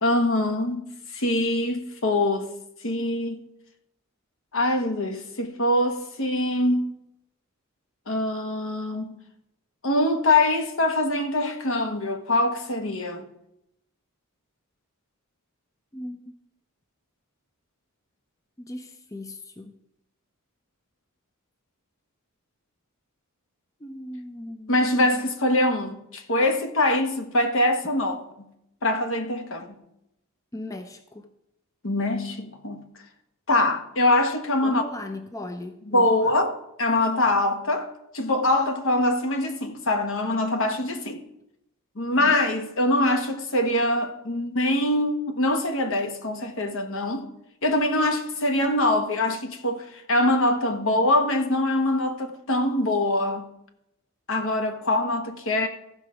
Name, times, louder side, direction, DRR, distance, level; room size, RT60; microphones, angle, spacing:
voice 1, 0.0-0.9 1.1-2.5 2.8-3.5 4.5-6.9 8.1-9.2 9.8-13.2 24.7-28.5 28.8-29.8 31.8-32.8 33.5-34.8 35.9-41.2 42.0-47.3 47.6-53.4 54.3-55.7, left 1 dB, 65° left, 1.2 m, -24 dB
voice 2, 15.9-16.3 18.6-19.8 23.8-25.3 30.5-31.3 34.6-36.3 42.2-42.4, left 1 dB, 15° left, 0.5 m, -38 dB
14.5 x 5.8 x 4.9 m
head